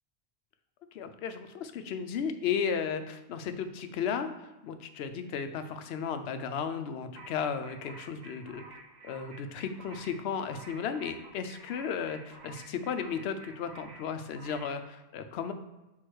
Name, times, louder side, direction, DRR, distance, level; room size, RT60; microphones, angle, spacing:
voice 1, 0.9-4.3 4.6-8.6 9.0-15.5, left 7 dB, 65° left, 8 dB, 0.8 m, -34 dB
sound 1, 7.2-14.8, right 3 dB, 45° right, 0.6 m, -51 dB
6.2 x 3.7 x 4.7 m, 1.0 s
omnidirectional pair, 1.2 m